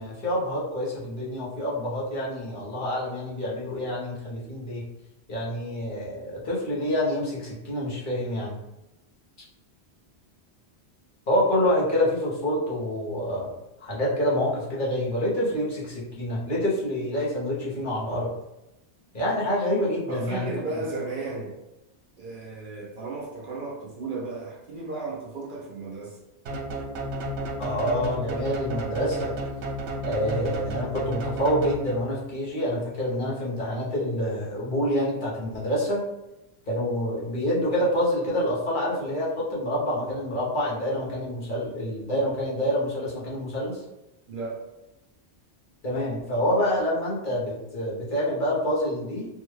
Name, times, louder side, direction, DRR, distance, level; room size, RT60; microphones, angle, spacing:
voice 1, 0.0-4.8 5.3-8.6 11.3-13.5 13.8-18.3 19.1-20.5 27.6-29.3 30.0-36.0 36.7-43.8 45.8-49.3, equal, 50° left, -6 dB, 1.0 m, -27 dB
voice 2, 20.1-21.6 22.2-26.2 44.3-44.7, right 3 dB, 55° right, -2 dB, 0.7 m, -34 dB
sound 1, 26.5-32.2, right 1 dB, 85° right, 0.9 m, -32 dB
3.4 x 2.2 x 3.0 m, 0.93 s
omnidirectional pair, 1.1 m